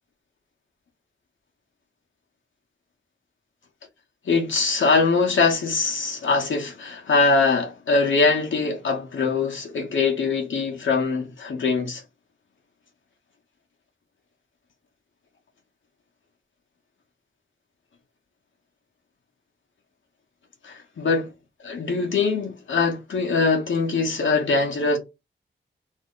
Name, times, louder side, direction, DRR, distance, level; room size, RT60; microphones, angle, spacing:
voice 1, 4.3-12.0 20.6-21.3 21.6-25.0, left 4 dB, 85° left, 0.9 m, -22 dB
2.7 x 2.1 x 3.7 m
wide cardioid pair, 130°, 19 cm